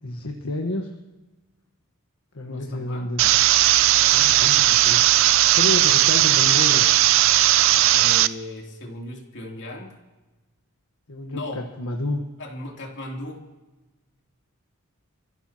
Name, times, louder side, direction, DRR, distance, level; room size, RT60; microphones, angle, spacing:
voice 1, 0.0-0.9 2.3-3.3 4.1-5.0 5.5-6.9 11.1-12.2, left 1 dB, 80° left, 2 dB, 1.4 m, -30 dB
voice 2, 2.5-3.1 4.2-4.4 7.9-10.0 11.3-11.7 12.4-13.4, left 1 dB, 55° left, -1 dB, 3.2 m, -37 dB
sound 1, 3.2-8.3, right 14 dB, 60° right, 0.4 m, -17 dB
29.0 x 15.0 x 3.0 m, 1.1 s
head